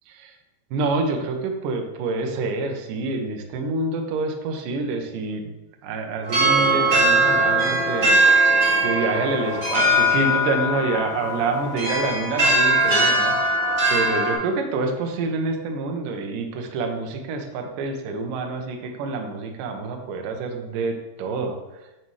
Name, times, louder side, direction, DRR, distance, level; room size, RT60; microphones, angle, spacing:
voice 1, 0.7-5.5 5.8-8.2 8.8-13.4 13.9-21.6, right 3 dB, 85° right, 3 dB, 1.8 m, -27 dB
sound 1, 6.2-14.3, right 1 dB, 30° right, 2.3 m, -20 dB
7.4 x 7.0 x 3.3 m, 0.96 s
omnidirectional pair, 5.1 m